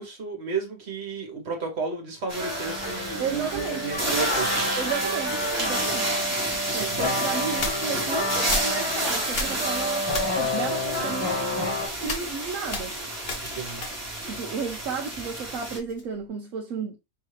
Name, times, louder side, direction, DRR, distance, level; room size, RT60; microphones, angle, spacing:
voice 1, 0.0-4.7 6.8-7.0 13.4-13.8, right 4 dB, 40° right, 1.4 m, -33 dB
sound 1, 2.3-15.8, right 1 dB, 10° right, 0.9 m, -30 dB
sound 2, 2.4-11.9, left 1 dB, 15° left, 1.2 m, -30 dB
voice 2, 3.2-3.9 4.8-6.1 6.7-10.1 10.4-11.7 12.0-13.0 14.3-17.0, right 6 dB, 65° right, 0.9 m, -33 dB
sound 3, 3.8-6.0 6.7-14.4 14.6-16.3, left 2 dB, 45° left, 0.9 m, -38 dB
5.5 x 2.7 x 3.2 m
omnidirectional pair, 1.8 m